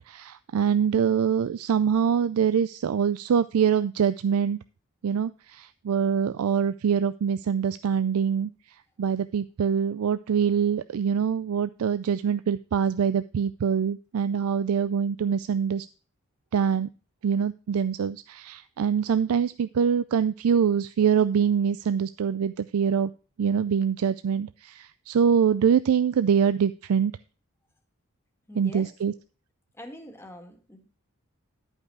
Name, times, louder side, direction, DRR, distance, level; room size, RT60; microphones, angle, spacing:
voice 1, 0.1-4.6 5.0-8.5 9.0-15.9 16.5-16.9 17.2-23.1 23.4-27.1 28.5-29.1, right 7 dB, 85° right, 13 dB, 0.4 m, -24 dB
voice 2, 28.5-28.9 29.7-30.9, equal, 10° left, 3 dB, 1.6 m, -44 dB
11.5 x 5.4 x 4.7 m, 0.36 s
head